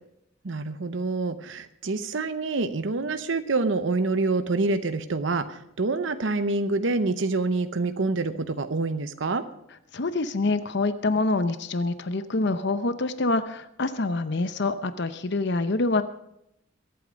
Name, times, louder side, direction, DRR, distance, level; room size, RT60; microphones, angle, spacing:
voice 1, 0.4-9.4, right 3 dB, 65° right, 10 dB, 0.8 m, -26 dB
voice 2, 9.9-16.0, left 3 dB, 55° left, 11 dB, 0.8 m, -26 dB
22.5 x 8.7 x 5.2 m, 0.80 s
head